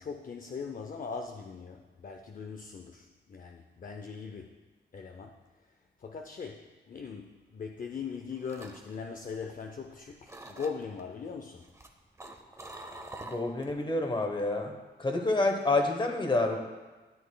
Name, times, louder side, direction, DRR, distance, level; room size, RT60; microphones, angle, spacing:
voice 1, 0.0-4.6 4.9-5.4 6.0-11.6, left 5 dB, 45° left, 4 dB, 0.5 m, -40 dB
sound 1, 8.1-9.9 10.3-11.0 11.6-13.8 14.1-14.5, right 2 dB, 15° right, 0.7 m, -46 dB
voice 2, 13.2-16.6, left 2 dB, 25° left, 4 dB, 1.0 m, -28 dB
12.5 x 7.5 x 2.2 m, 1.3 s
wide cardioid pair, 95°, 19 cm